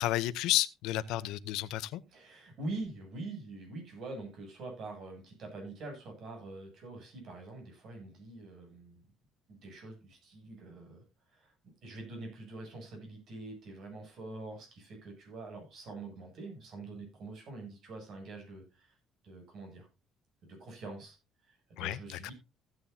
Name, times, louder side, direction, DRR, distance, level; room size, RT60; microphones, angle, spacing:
voice 1, 0.0-2.0 21.8-22.3, left 15 dB, 80° left, 0.7 m, -32 dB
voice 2, 2.1-9.0 9.5-11.5 11.8-19.0 19.2-19.9 20.4-21.2 21.5-22.3, right 2 dB, 50° right, 7.8 m, -45 dB
15.5 x 9.8 x 2.8 m
cardioid pair, 160°, 0 cm